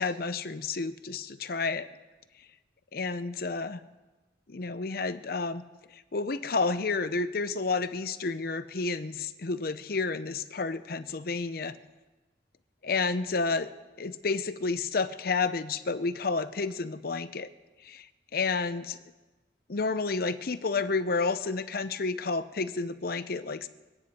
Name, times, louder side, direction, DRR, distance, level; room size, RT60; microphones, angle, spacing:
voice 1, 0.0-1.9 3.0-3.8 4.5-5.6 5.9-11.7 12.8-13.7 14.0-17.5 17.8-18.1 18.3-19.0 19.7-23.7, left 4 dB, 55° left, 13 dB, 0.7 m, -30 dB
27.0 x 9.5 x 4.3 m, 1.2 s
head